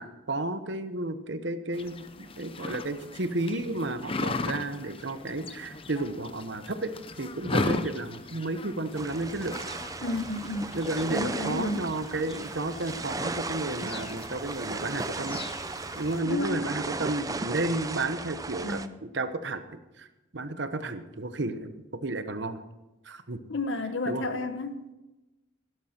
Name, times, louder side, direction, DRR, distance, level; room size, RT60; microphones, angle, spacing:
voice 1, 0.0-9.6 10.7-15.4 15.9-20.1 20.3-21.7 22.0-22.6 23.0-23.4 24.1-24.2, right 2 dB, 65° right, 10 dB, 1.1 m, -32 dB
sound 1, 1.7-16.2, left 2 dB, 30° left, 0.7 m, -38 dB
sound 2, 9.0-18.9, right 3 dB, 20° right, 0.5 m, -36 dB
voice 2, 10.0-10.7 11.1-11.9 16.2-16.7 18.6-19.0 23.5-24.9, left 2 dB, 70° left, 9 dB, 1.0 m, -32 dB
17.0 x 11.5 x 4.5 m, 1.0 s
head